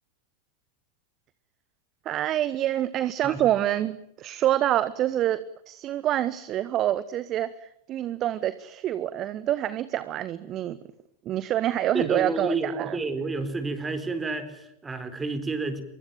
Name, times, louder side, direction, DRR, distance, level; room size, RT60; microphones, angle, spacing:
voice 1, 2.0-7.5 7.9-10.8 11.2-13.0, right 12 dB, 35° right, 15 dB, 1.2 m, -26 dB
voice 2, 11.9-15.8, right 3 dB, 15° right, 9 dB, 4.4 m, -30 dB
25.0 x 23.5 x 9.2 m, 0.76 s
figure-of-eight pair, 90°, 0 cm